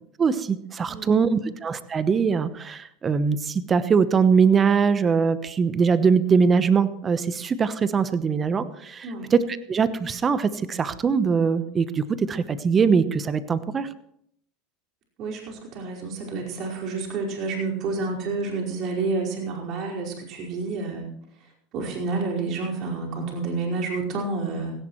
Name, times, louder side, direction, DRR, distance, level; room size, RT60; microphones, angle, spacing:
voice 1, 0.2-13.9, right 5 dB, 25° right, 13 dB, 1.0 m, -22 dB
voice 2, 0.9-1.5 9.0-9.3 15.2-21.0 21.7-24.7, right 3 dB, 50° right, -2 dB, 5.0 m, -29 dB
17.0 x 16.5 x 3.2 m, 0.70 s
supercardioid pair, 115°, 0 cm